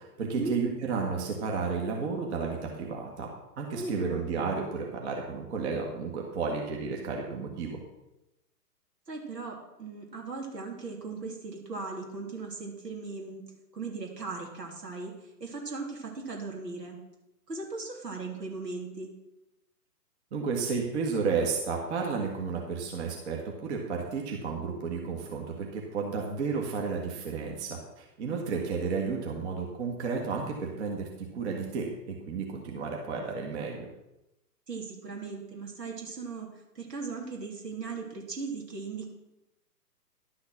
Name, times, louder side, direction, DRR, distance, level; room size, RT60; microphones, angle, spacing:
voice 1, 0.0-3.3 3.6-7.8 20.3-33.9, right 5 dB, 45° right, 0 dB, 1.9 m, -32 dB
voice 2, 3.7-4.2 9.1-13.4 13.7-15.1 15.4-17.0 17.5-19.1 28.5-28.6 34.7-36.5 36.7-39.1, right 4 dB, 80° right, 0 dB, 3.2 m, -38 dB
11.5 x 6.4 x 6.1 m, 0.92 s
figure-of-eight pair, 125°, 49 cm